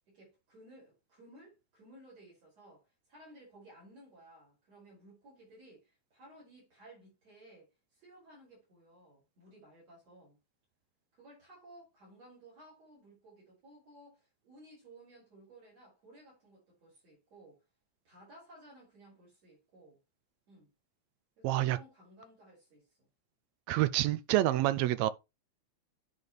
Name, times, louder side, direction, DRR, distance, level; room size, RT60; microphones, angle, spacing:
voice 1, 0.1-2.8 3.1-7.7 7.9-10.4 11.1-17.6 18.0-20.0 20.5-20.7 21.4-22.9, right 1 dB, 60° right, 6.3 m, -57 dB
voice 2, 21.4-21.8 23.7-25.1, right 15 dB, 80° right, 1.7 m, -27 dB
10.5 x 4.2 x 3.2 m
omnidirectional pair, 3.3 m